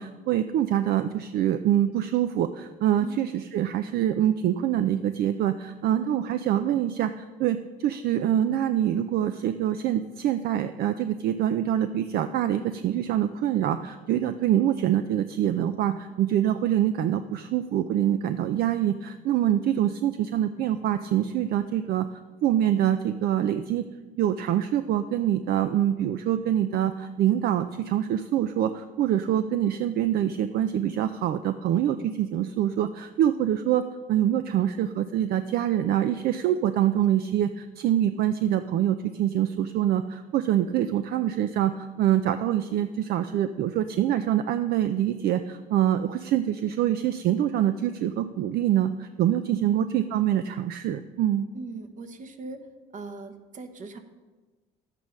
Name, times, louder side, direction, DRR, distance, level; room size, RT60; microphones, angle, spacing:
voice 1, 0.0-22.1 22.4-23.9 24.2-33.8 34.1-51.5, right 11 dB, 65° right, 10 dB, 0.5 m, -25 dB
voice 2, 51.5-52.7 52.9-54.0, right 3 dB, 50° right, 7 dB, 1.2 m, -39 dB
11.0 x 8.3 x 5.3 m, 1.3 s
cardioid pair, 110°, 17 cm